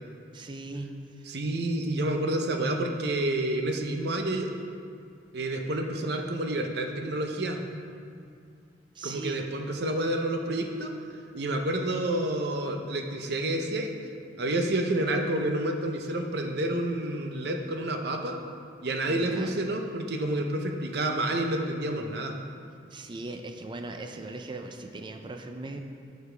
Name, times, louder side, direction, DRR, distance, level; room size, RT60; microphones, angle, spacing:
voice 1, 0.3-1.3 8.9-9.4 19.1-19.6 22.9-25.8, right 2 dB, 25° right, 5 dB, 0.4 m, -39 dB
voice 2, 1.3-4.5 5.3-7.6 9.0-10.9 11.3-13.9 14.4-18.4 18.8-22.3, right 1 dB, 65° right, 4 dB, 0.8 m, -29 dB
9.4 x 6.7 x 3.4 m, 2.4 s
head